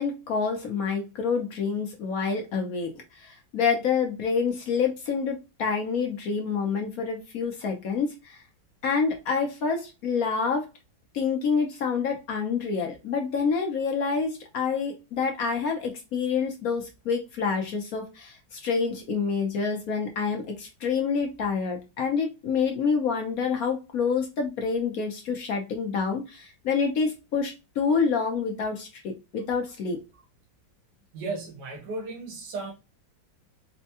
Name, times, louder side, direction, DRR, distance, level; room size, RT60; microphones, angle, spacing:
voice 1, 0.0-2.9 3.2-8.4 8.8-10.7 11.1-30.0, left 5 dB, 60° left, 1.0 m, -27 dB
voice 2, 31.1-32.7, right 3 dB, 65° right, 1.4 m, -35 dB
4.3 x 2.2 x 2.7 m
omnidirectional pair, 2.1 m